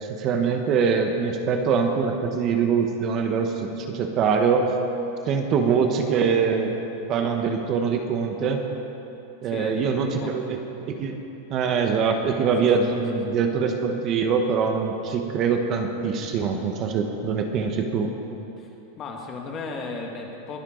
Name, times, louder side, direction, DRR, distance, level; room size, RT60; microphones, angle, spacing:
voice 1, 0.0-4.7 5.3-6.8 7.1-8.6 9.4-10.6 10.9-11.2 11.5-18.1, right 5 dB, 35° right, 4 dB, 1.1 m, -23 dB
voice 2, 9.4-9.9 10.2-10.6 12.8-13.3 18.6-20.6, left 4 dB, 30° left, 1 dB, 1.9 m, -36 dB
22.0 x 12.0 x 3.9 m, 2.9 s
supercardioid pair, 155°, 0 cm